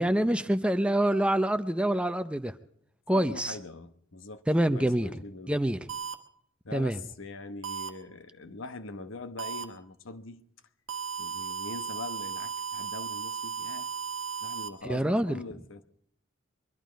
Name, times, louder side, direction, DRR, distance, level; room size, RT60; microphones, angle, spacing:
voice 1, 0.0-2.5 3.1-3.5 4.5-5.1 5.5-5.8 6.7-7.0 14.8-15.4, right 1 dB, 5° right, 0.6 m, -26 dB
voice 2, 3.1-4.5 4.7-5.6 6.6-10.4 11.2-13.9 14.4-15.8, left 2 dB, 70° left, 1.1 m, -42 dB
sound 1, 5.9-6.1 7.6-7.9 9.4-9.6 10.9-14.7, right 6 dB, 70° right, 1.2 m, -35 dB
23.0 x 11.5 x 5.1 m
head